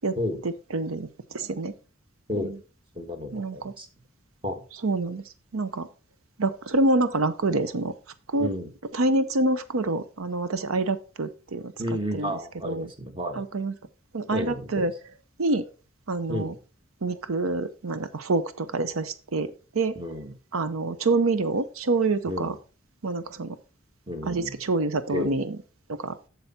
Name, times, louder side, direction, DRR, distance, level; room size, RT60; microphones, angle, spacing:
voice 1, 0.7-1.7 2.4-2.5 3.3-3.7 4.8-5.2 5.5-5.9 6.4-7.9 8.3-8.5 8.9-11.7 12.1-12.4 12.6-12.9 13.4-13.7 14.1-14.9 15.4-15.6 16.1-16.5 17.0-20.0 20.5-22.5 23.0-23.6 24.2-25.6 25.9-26.2, right 2 dB, 90° right, 12 dB, 0.7 m, -26 dB
voice 2, 2.9-3.9 4.4-4.6 8.4-8.7 11.8-13.4 14.3-14.9 16.3-16.6 19.9-20.3 22.2-22.6 24.1-24.6 25.1-25.4, left 1 dB, 25° right, 6 dB, 1.4 m, -32 dB
8.0 x 7.0 x 4.2 m, 0.36 s
head